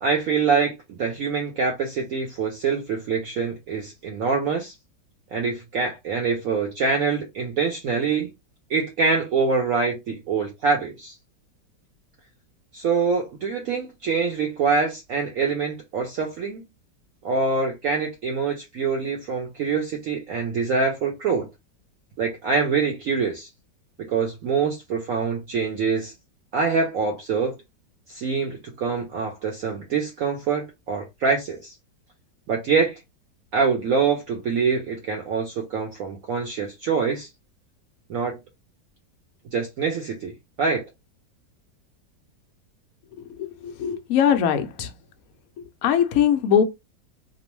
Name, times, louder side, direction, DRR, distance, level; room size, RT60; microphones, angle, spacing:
voice 1, 0.0-4.7 5.3-8.3 8.7-11.1 12.7-16.6 17.2-21.5 22.2-23.5 24.0-26.1 26.5-27.5 28.1-31.7 32.5-33.0 33.5-37.3 38.1-38.4 39.5-40.3 40.6-40.9, right 5 dB, 70° right, 0.8 m, -25 dB
voice 2, 43.2-44.9 45.6-46.6, left 8 dB, 70° left, 0.8 m, -22 dB
2.9 x 2.0 x 3.0 m
omnidirectional pair, 1.9 m